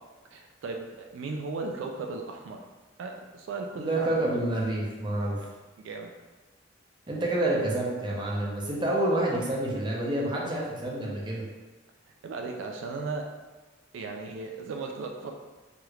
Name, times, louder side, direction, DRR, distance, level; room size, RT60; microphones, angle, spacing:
voice 1, 0.3-2.6 3.0-4.3 5.4-5.5 5.8-6.1 12.2-13.2 13.9-15.3, right 3 dB, 75° right, 2 dB, 0.3 m, -36 dB
voice 2, 3.8-5.4 7.1-11.4, right 1 dB, 25° right, -3 dB, 0.5 m, -28 dB
3.1 x 3.0 x 2.3 m, 1.2 s
head